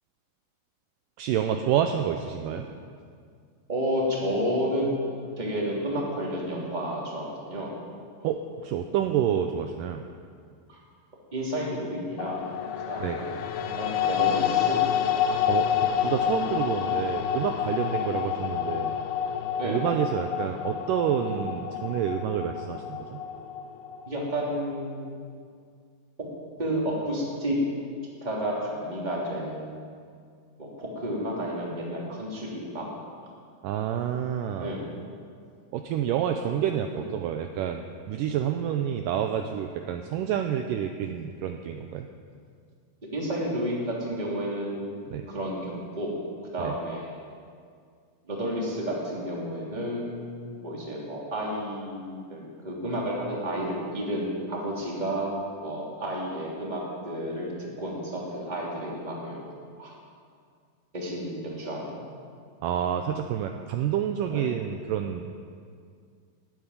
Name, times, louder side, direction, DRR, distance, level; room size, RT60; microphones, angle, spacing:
voice 1, 1.2-2.7 8.2-10.0 13.0-13.2 15.5-15.7 16.0-19.0 19.6-23.2 33.6-34.7 35.7-42.1 45.1-45.3 46.6-46.8 62.6-65.2, right 9 dB, 80° right, 5 dB, 2.0 m, -28 dB
voice 2, 3.7-4.9 5.4-7.7 10.7-10.8 11.3-12.4 12.9-13.4 13.7-14.8 19.6-19.8 21.2-21.4 24.1-25.1 26.6-27.6 28.2-29.8 30.6-32.8 34.6-34.9 36.4-36.5 36.9-37.0 40.2-40.3 43.1-45.0 45.3-46.1 46.5-47.1 48.3-55.3 55.6-59.5 59.8-59.9 60.9-62.0 64.3-64.5, equal, 15° right, -4 dB, 2.6 m, -31 dB
sound 1, 12.2-24.4, left 9 dB, 90° left, 2.8 m, -28 dB
13.0 x 9.2 x 9.8 m, 2.2 s
omnidirectional pair, 4.3 m